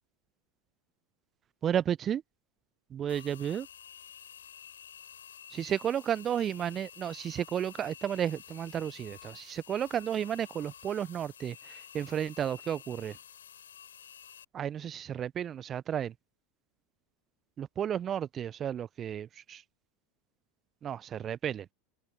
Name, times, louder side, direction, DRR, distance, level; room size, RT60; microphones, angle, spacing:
voice 1, 1.6-2.2 2.9-3.7 5.5-13.2 14.5-16.1 17.6-19.6 20.8-21.7, right 9 dB, 35° right, 0.7 m, -33 dB
sound 1, 3.1-14.4, left 9 dB, 75° left, 5.3 m, -51 dB
figure-of-eight pair, 80°, 0 cm